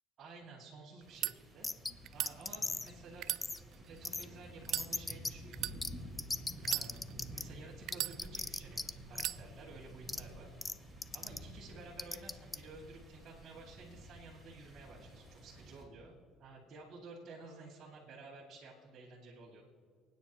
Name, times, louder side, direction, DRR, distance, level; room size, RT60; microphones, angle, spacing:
voice 1, 0.2-1.7 2.1-3.3 3.8-5.8 6.6-7.0 7.3-10.5 11.1-19.6, right 3 dB, 50° right, -7 dB, 2.4 m, -53 dB
sound 1, 1.0-15.8, right 1 dB, 10° right, 3.0 m, -52 dB
sound 2, 1.0-1.3 2.0-2.3 3.1-4.1 4.6-4.9 5.5-5.8 6.6-7.3 7.9-8.6 9.2-9.4, right 13 dB, 65° right, 0.4 m, -37 dB
sound 3, 1.6-1.9 2.3-2.9 3.4-3.6 4.0-4.2 4.7-5.3 5.8-5.9 6.2-7.4 7.9-8.9 9.1-9.3 10.1-10.2 10.6-10.7 11.0-11.4 12.0-12.6, left 3 dB, 15° left, 0.5 m, -37 dB
28.5 x 9.6 x 3.1 m, 2.2 s
cardioid pair, 115°, 0 cm